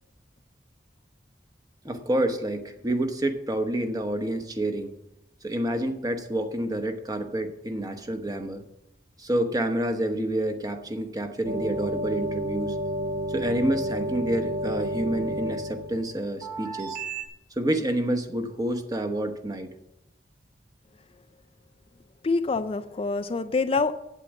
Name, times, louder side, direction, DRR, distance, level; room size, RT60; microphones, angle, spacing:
voice 1, 1.8-4.9 5.4-8.6 9.2-12.7 13.3-17.0 17.5-19.7, right 1 dB, 20° right, 7 dB, 1.0 m, -28 dB
sound 1, 11.4-17.2, right 1 dB, 60° right, 2.6 m, -31 dB
voice 2, 22.2-23.9, left 3 dB, 30° left, 10 dB, 0.4 m, -26 dB
8.4 x 8.3 x 7.4 m, 0.87 s
head